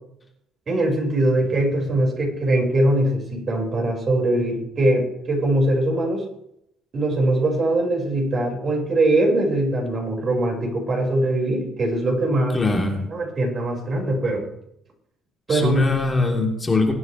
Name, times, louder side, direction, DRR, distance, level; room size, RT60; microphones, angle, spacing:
voice 1, 0.7-6.2 6.9-12.6 13.1-14.4 15.5-15.9, right 1 dB, 45° right, 0 dB, 5.1 m, -21 dB
voice 2, 12.5-13.0 15.5-16.9, left 3 dB, 25° left, 0 dB, 2.8 m, -21 dB
22.0 x 9.3 x 3.3 m, 0.77 s
cardioid pair, 90°, 0 cm